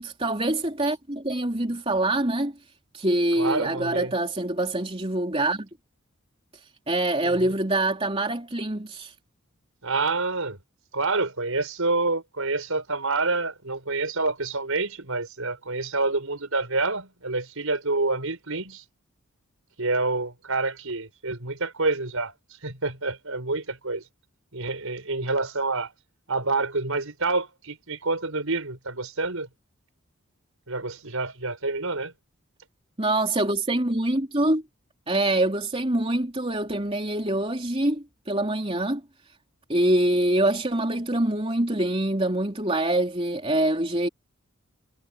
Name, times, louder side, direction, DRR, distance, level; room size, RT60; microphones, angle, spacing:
voice 1, 0.0-2.5 2.9-5.7 6.9-9.1 33.0-34.6 35.1-39.0 39.7-44.1, right 1 dB, 25° right, 3.6 m, -25 dB
voice 2, 3.4-4.1 7.2-7.6 9.8-10.6 10.9-18.8 19.8-22.3 22.6-24.0 24.5-25.9 26.3-29.5 30.7-32.1, right 3 dB, 75° right, 4.8 m, -27 dB
head